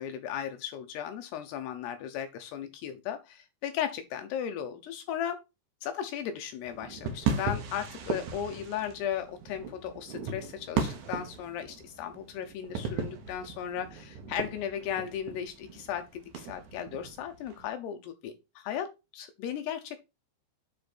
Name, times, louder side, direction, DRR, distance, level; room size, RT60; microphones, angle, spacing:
voice 1, 0.0-5.4 5.8-20.0, left 9 dB, 75° left, 7 dB, 2.6 m, -36 dB
sound 1, 6.6-17.7, right 5 dB, 80° right, 1.7 m, -37 dB
9.5 x 4.4 x 4.2 m, 0.25 s
omnidirectional pair, 5.4 m